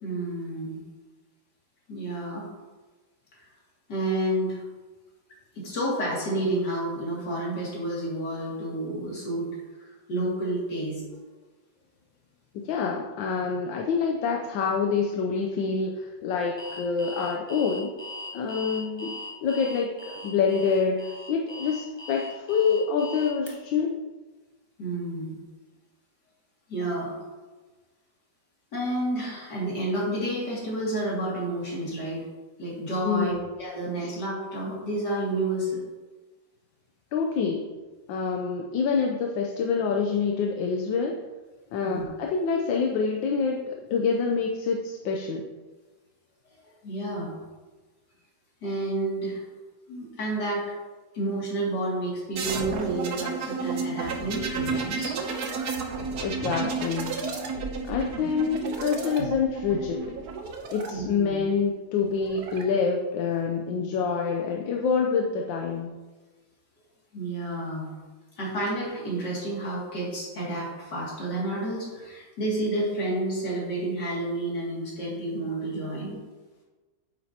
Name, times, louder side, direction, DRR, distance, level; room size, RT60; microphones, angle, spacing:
voice 1, 0.0-0.8 1.9-2.5 3.9-4.6 5.6-9.5 9.8-11.0 24.8-25.3 26.7-27.1 28.7-32.2 32.6-35.8 41.8-42.0 46.8-47.3 48.6-49.4 49.9-50.7 51.1-55.2 60.9-61.4 67.1-67.9 68.4-76.2, right 1 dB, 65° left, -5 dB, 3.0 m, -30 dB
voice 2, 12.6-17.9 18.3-24.0 33.0-33.4 34.0-34.1 37.1-37.7 38.1-41.2 41.7-45.4 56.2-57.4 57.9-60.1 60.7-65.9, left 5 dB, 85° left, 1 dB, 1.4 m, -26 dB
Alarm, 16.6-23.5, left 2 dB, 20° left, 0.9 m, -40 dB
sound 1, 52.3-60.9 62.0-62.6, right 4 dB, 60° right, 1.3 m, -32 dB
9.2 x 7.6 x 2.9 m, 1.3 s
omnidirectional pair, 2.0 m